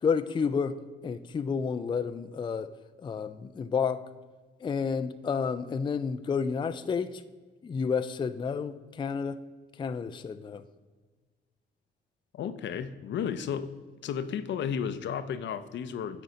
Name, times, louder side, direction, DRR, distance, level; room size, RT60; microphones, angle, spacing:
voice 1, 0.0-0.8 1.0-2.7 3.0-4.0 4.6-7.2 7.6-9.4 9.7-10.6, left 6 dB, 25° left, 11 dB, 0.4 m, -30 dB
voice 2, 12.3-13.7 14.0-16.2, left 7 dB, 65° left, 11 dB, 0.6 m, -33 dB
9.1 x 4.0 x 5.0 m, 1.4 s
cardioid pair, 90°, 20 cm